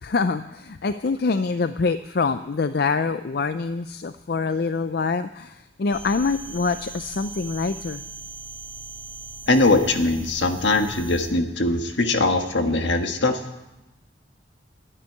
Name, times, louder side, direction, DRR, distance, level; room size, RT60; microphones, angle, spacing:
voice 1, 0.0-8.0, left 4 dB, 55° left, 11 dB, 0.5 m, -25 dB
sound 1, 5.9-11.3, right 3 dB, 35° right, 3.2 m, -40 dB
voice 2, 9.5-13.4, left 2 dB, 70° left, 6 dB, 1.5 m, -21 dB
13.5 x 10.0 x 9.6 m, 0.99 s
head